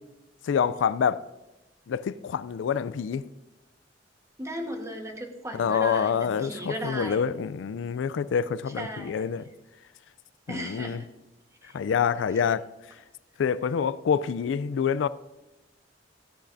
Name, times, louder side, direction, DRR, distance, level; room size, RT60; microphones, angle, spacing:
voice 1, 0.4-1.2 1.9-3.2 5.5-9.5 10.5-11.0 11.7-12.6 13.4-15.1, left 7 dB, 90° left, 0.3 m, -26 dB
voice 2, 4.4-7.2 8.8-9.3 10.5-11.1 11.6-11.8, right 1 dB, 15° right, 1.2 m, -36 dB
14.0 x 10.0 x 2.6 m
head